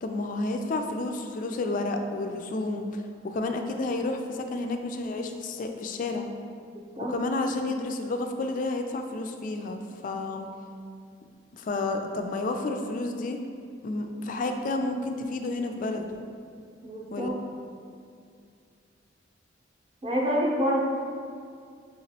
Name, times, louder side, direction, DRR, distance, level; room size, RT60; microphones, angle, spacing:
voice 1, 0.0-3.0 3.3-6.3 7.1-10.5 11.5-13.4 13.8-16.2 17.1-17.3, left 2 dB, 45° left, 5 dB, 0.3 m, -30 dB
voice 2, 6.7-7.1 16.8-17.4 20.0-20.8, equal, 30° right, -3 dB, 0.6 m, -27 dB
5.8 x 2.9 x 2.8 m, 2.3 s
head